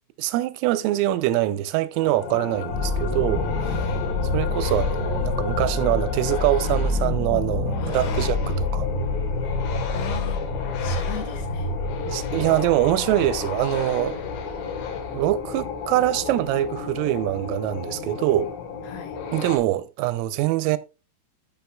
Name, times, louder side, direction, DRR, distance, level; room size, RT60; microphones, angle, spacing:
voice 1, 0.2-3.9 4.3-8.9 12.1-14.2 15.1-18.5 19.3-20.8, right 15 dB, 90° right, 3.2 m, -24 dB
sound 1, 1.9-19.6, left 6 dB, 70° left, 3.2 m, -33 dB
sound 2, 2.7-16.7, left 2 dB, 50° left, 5.0 m, -28 dB
voice 2, 7.8-8.3 9.9-10.4 10.8-11.7 18.8-19.2, left 8 dB, 90° left, 4.0 m, -38 dB
13.5 x 5.4 x 2.2 m
omnidirectional pair, 5.7 m